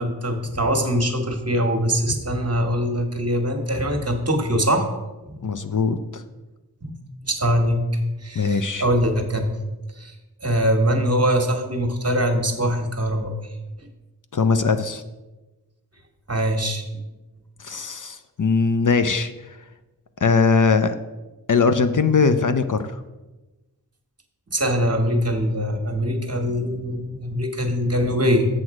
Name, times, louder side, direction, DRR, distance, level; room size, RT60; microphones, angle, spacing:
voice 1, 0.0-4.8 5.3-5.4 6.8-6.9 7.2-9.4 10.0-10.1 10.4-13.3 16.3-17.0 24.5-28.5, equal, 40° right, 5 dB, 1.4 m, -22 dB
voice 2, 5.4-6.2 8.4-8.8 14.3-15.0 17.6-19.6 20.2-20.9 21.5-23.0, left 4 dB, 50° left, 10 dB, 0.5 m, -20 dB
7.7 x 6.2 x 4.8 m, 1.1 s
wide cardioid pair, 50°, 39 cm